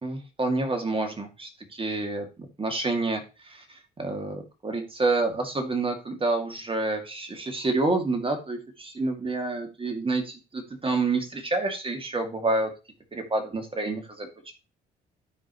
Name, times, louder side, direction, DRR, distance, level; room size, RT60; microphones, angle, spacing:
voice 1, 0.0-12.7 13.1-14.5, right 3 dB, 25° right, 4 dB, 2.3 m, -28 dB
12.5 x 5.0 x 3.0 m, 0.30 s
hypercardioid pair, 55°, 20 cm